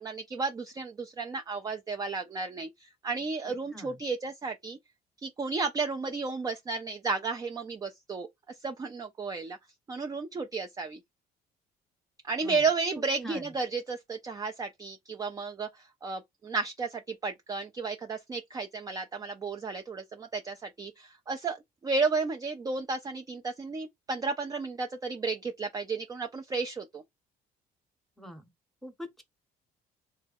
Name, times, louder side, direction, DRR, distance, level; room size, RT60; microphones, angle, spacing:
voice 1, 0.0-4.8 5.2-8.3 8.6-9.6 9.9-11.0 12.2-27.0, right 4 dB, 20° right, 0.4 m, -33 dB
voice 2, 3.4-4.0 12.4-12.6 13.2-13.5 28.2-28.5 28.8-29.2, equal, ahead, 0.9 m, -44 dB
3.3 x 2.2 x 3.4 m
cardioid pair, 110°, 17 cm